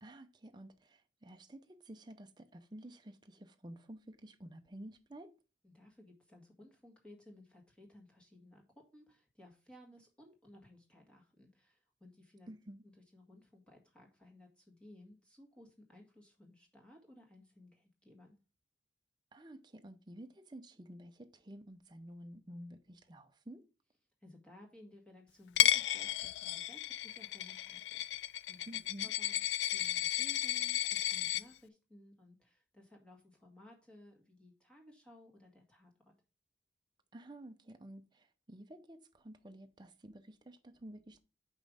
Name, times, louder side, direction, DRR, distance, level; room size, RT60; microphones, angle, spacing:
voice 1, 0.0-5.3 12.5-12.8 19.3-23.6 28.7-29.1 37.1-41.2, right 1 dB, 25° right, 0.6 m, -51 dB
voice 2, 5.6-12.5 12.8-18.3 24.2-28.7 29.0-36.1, left 1 dB, 5° left, 1.7 m, -59 dB
Coin (dropping), 25.6-31.4, left 12 dB, 85° left, 0.3 m, -33 dB
5.6 x 5.2 x 4.9 m
head